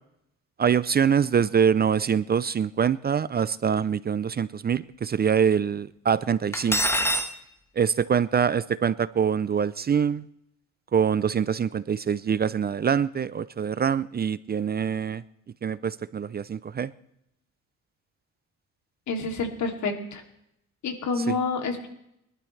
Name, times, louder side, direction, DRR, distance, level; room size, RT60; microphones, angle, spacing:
voice 1, 0.6-6.8 7.8-10.3 10.9-15.2 15.6-16.9 21.3-21.4, right 7 dB, 30° right, 17 dB, 0.5 m, -24 dB
Cutlery silverware, 6.5-7.3, equal, 10° left, 1.4 m, -24 dB
voice 2, 19.1-20.2 20.8-21.9, left 4 dB, 70° left, 3 dB, 2.8 m, -28 dB
23.5 x 12.0 x 3.3 m, 0.78 s
cardioid pair, 90°, 30 cm